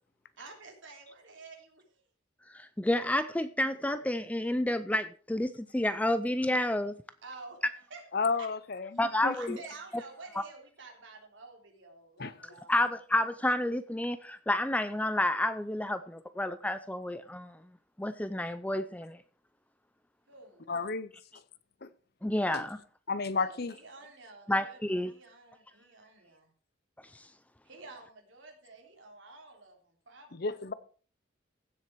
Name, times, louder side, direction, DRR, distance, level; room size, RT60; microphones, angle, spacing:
voice 1, 0.4-2.0 7.2-8.0 8.4-8.5 9.3-12.9 20.3-20.7 23.3-26.5 27.6-30.5, right 3 dB, 70° right, 3.5 m, -50 dB
voice 2, 2.5-6.9 9.0-9.6 12.7-17.6 18.0-19.2 22.2-22.8 24.5-25.1 27.1-27.3, left 1 dB, 5° left, 0.4 m, -30 dB
voice 3, 8.1-8.9 9.2-9.6 12.2-12.3 20.7-21.1 21.8-21.9 22.5-22.6 23.1-23.7 30.4-30.7, left 4 dB, 50° left, 0.7 m, -32 dB
16.0 x 7.5 x 4.7 m
head